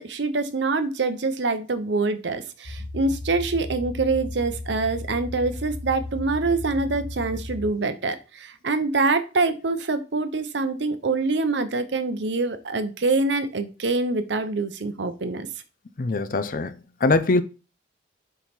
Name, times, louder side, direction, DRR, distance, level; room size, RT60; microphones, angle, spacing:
voice 1, 0.0-15.5, right 3 dB, 75° right, 0.8 m, -25 dB
sound 1, 2.6-7.7, left 2 dB, 35° right, 1.5 m, -35 dB
voice 2, 16.0-16.7 17.0-17.4, left 3 dB, 45° left, 0.5 m, -22 dB
5.2 x 4.6 x 4.2 m
head